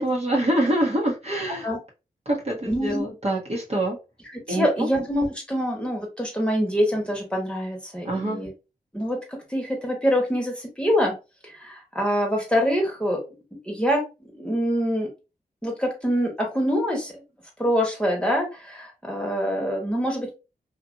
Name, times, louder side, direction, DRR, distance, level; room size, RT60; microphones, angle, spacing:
voice 1, 0.0-1.7 2.3-4.0 4.5-4.9 8.0-8.4, right 1 dB, 40° right, -1 dB, 1.1 m, -25 dB
voice 2, 2.6-3.0 4.5-8.5 8.9-9.2 9.5-11.1 11.4-13.2 13.5-15.1 15.6-17.2 17.6-20.4, equal, 5° left, 0 dB, 1.2 m, -25 dB
2.7 x 2.5 x 2.6 m, 0.28 s
cardioid pair, 55°, 16 cm